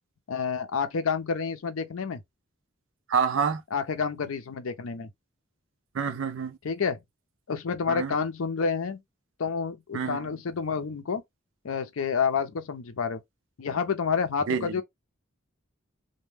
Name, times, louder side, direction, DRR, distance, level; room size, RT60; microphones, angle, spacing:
voice 1, 0.3-2.2 3.7-5.1 6.6-7.0 7.5-9.0 9.4-11.2 11.6-13.2 13.6-14.8, left 5 dB, 85° left, 0.5 m, -29 dB
voice 2, 3.1-3.6 5.9-6.6 7.9-8.1 9.9-10.2 14.5-14.8, right 6 dB, 70° right, 0.4 m, -27 dB
2.2 x 2.1 x 3.2 m
head